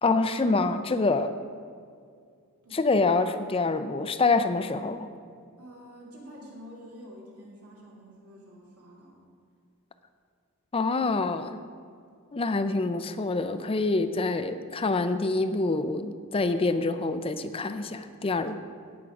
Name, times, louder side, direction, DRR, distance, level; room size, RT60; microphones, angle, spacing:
voice 1, 0.0-1.3 2.7-5.1 10.7-11.6 12.3-18.6, left 3 dB, 25° left, 10 dB, 0.4 m, -26 dB
voice 2, 5.6-9.3, equal, 85° right, -3 dB, 3.0 m, -48 dB
17.0 x 6.1 x 5.1 m, 2.2 s
head